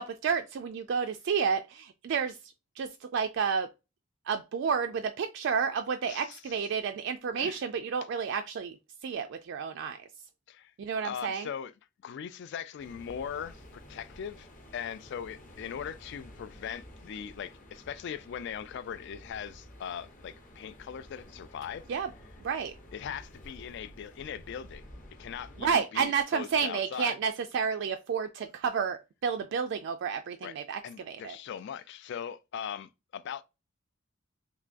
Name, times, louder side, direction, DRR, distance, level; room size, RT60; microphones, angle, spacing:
voice 1, 0.0-2.4 2.8-3.7 4.3-8.8 9.0-10.0 10.8-11.5 21.9-22.1 22.4-22.7 25.6-30.8 31.1-31.4, right 6 dB, 55° right, 0.3 m, -30 dB
voice 2, 6.1-6.5 7.4-7.6 10.5-10.7 11.0-11.7 12.0-14.5 14.7-21.8 22.9-24.8 25.2-27.2 30.4-30.5 30.8-33.4, left 8 dB, 55° left, 0.3 m, -40 dB
sound 1, 12.8-25.7, left 1 dB, 40° left, 0.8 m, -51 dB
3.5 x 2.9 x 2.5 m
head